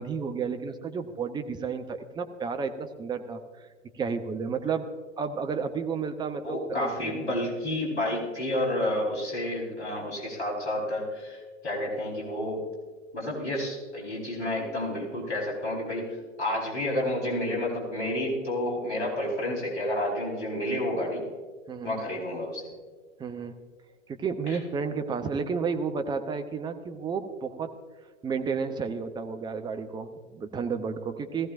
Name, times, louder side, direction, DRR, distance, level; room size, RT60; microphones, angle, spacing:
voice 1, 0.0-3.4 4.0-4.9 5.2-7.4 21.7-22.0 23.2-23.5 24.1-27.7 28.2-31.5, right 5 dB, 10° right, 6 dB, 0.7 m, -32 dB
voice 2, 6.4-12.6 13.1-21.2 21.8-22.7 24.5-24.6, left 1 dB, 60° left, -2 dB, 4.4 m, -30 dB
18.0 x 15.0 x 2.6 m, 1.4 s
figure-of-eight pair, 100°, 37 cm